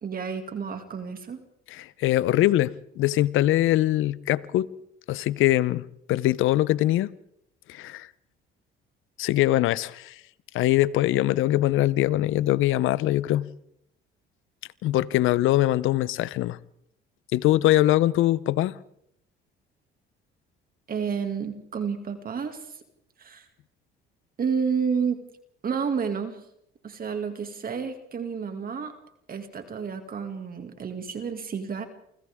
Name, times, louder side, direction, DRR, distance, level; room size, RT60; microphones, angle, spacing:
voice 1, 0.0-1.4 20.9-22.8 23.2-23.5 24.4-25.2 25.6-26.4 26.8-28.9 29.3-31.9, right 6 dB, 45° right, 2.4 m, -30 dB
voice 2, 1.7-4.7 5.1-5.8 6.1-7.1 7.7-8.1 9.2-10.2 10.5-13.5 14.8-16.6 17.3-18.7, left 15 dB, 70° left, 0.8 m, -22 dB
28.5 x 25.0 x 3.7 m
supercardioid pair, 85°, 21 cm